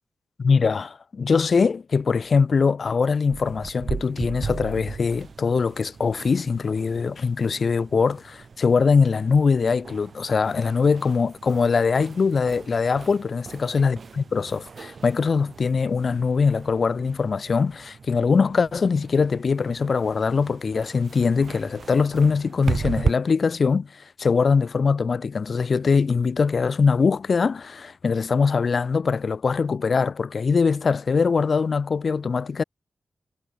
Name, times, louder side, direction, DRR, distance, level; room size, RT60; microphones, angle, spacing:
voice 1, 0.4-32.6, left 5 dB, 55° left, 0.5 m, -22 dB
sound 1, 3.3-23.1, right 5 dB, 60° right, 2.4 m, -36 dB
wide cardioid pair, 85°, 0 cm